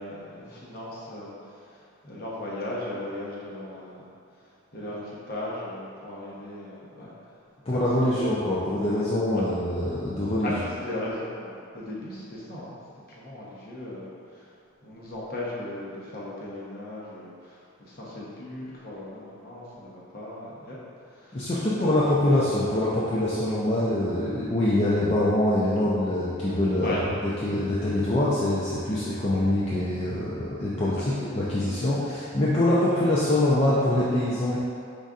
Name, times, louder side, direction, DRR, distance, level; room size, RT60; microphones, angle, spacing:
voice 1, 0.0-1.3 2.0-4.0 4.7-7.1 8.0-8.1 9.3-9.4 10.4-12.8 13.1-14.1 14.3-14.5 14.8-20.8 21.1-21.4 21.8-22.0 26.8-27.0 30.9-31.1, left 1 dB, 50° left, -6 dB, 1.0 m, -37 dB
voice 2, 7.7-10.5 21.3-34.6, left 1 dB, 30° left, -9 dB, 0.5 m, -24 dB
5.2 x 4.0 x 2.4 m, 2.4 s
head